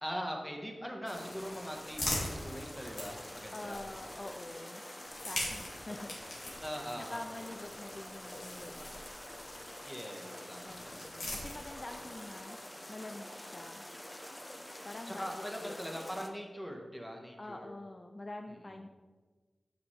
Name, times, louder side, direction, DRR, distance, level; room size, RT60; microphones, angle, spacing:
voice 1, 0.0-3.8 6.6-7.5 9.8-11.0 15.1-17.7 18.5-18.7, equal, 5° left, 1 dB, 1.3 m, -42 dB
sound 1, 1.1-4.2 5.0-9.6 10.6-12.0, left 1 dB, 90° left, 1.9 m, -42 dB
sound 2, 1.1-16.3, left 1 dB, 20° left, 0.8 m, -47 dB
voice 2, 3.5-4.8 5.3-6.2 6.5-6.6 7.0-9.0 10.6-12.6 12.9-13.8 14.8-15.8 17.4-18.9, left 2 dB, 40° left, 4 dB, 0.4 m, -46 dB
7.1 x 6.1 x 3.3 m, 1.4 s
cardioid pair, 40°, 0 cm